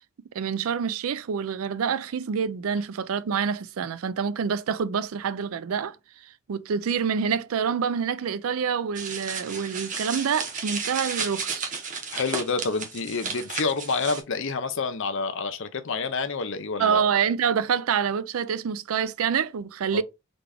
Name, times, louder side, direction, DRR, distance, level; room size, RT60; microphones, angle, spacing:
voice 1, 0.3-6.0 6.5-11.7 16.8-20.0, right 7 dB, 80° right, 0.4 m, -27 dB
sound 1, 9.0-14.2, right 5 dB, 40° right, 0.9 m, -33 dB
voice 2, 12.1-17.0 19.9-20.0, left 4 dB, 60° left, 0.7 m, -28 dB
3.9 x 3.4 x 3.4 m
head